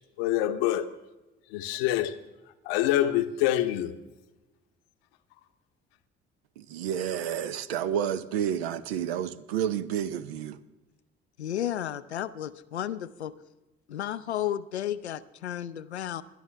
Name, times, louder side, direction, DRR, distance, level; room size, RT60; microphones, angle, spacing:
voice 1, 0.2-0.9 1.5-2.1 2.7-3.9, left 13 dB, 65° left, 0.9 m, -25 dB
voice 2, 6.6-10.6, right 9 dB, 70° right, 0.7 m, -30 dB
voice 3, 11.4-13.3 13.9-16.2, left 11 dB, 80° left, 0.5 m, -33 dB
20.5 x 11.5 x 3.3 m
figure-of-eight pair, 50°, 33 cm